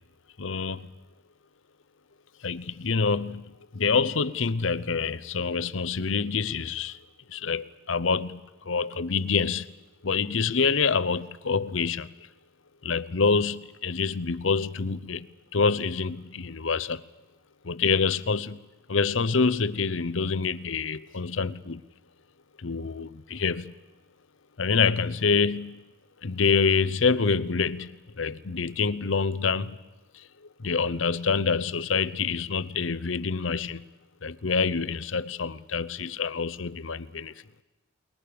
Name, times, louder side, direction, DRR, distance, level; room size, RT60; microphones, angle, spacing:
voice 1, 0.4-0.9 2.4-7.0 7.3-9.7 10.0-12.1 12.8-15.3 15.5-17.0 17.6-18.6 18.9-21.8 22.6-23.7 24.6-25.8 26.2-29.8 30.1-30.3 30.6-33.9 34.2-37.3, left 5 dB, 75° left, 0.8 m, -26 dB
29.5 x 21.5 x 6.9 m
head